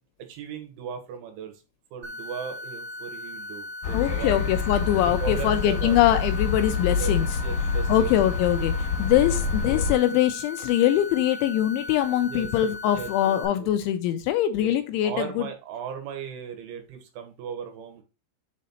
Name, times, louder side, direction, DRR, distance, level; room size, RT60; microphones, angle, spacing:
voice 1, 0.3-1.5 1.9-4.3 5.0-6.0 6.9-8.1 12.3-13.7 14.6-14.7 15.0-18.0, right 7 dB, 75° right, 3.5 m, -37 dB
sound 1, 2.0-13.4, left 2 dB, 30° right, 1.8 m, -38 dB
sound 2, 3.8-9.9, left 5 dB, 60° left, 2.4 m, -27 dB
voice 2, 3.9-7.3 7.9-15.5, left 12 dB, 80° left, 2.8 m, -23 dB
7.4 x 4.1 x 4.3 m
omnidirectional pair, 5.7 m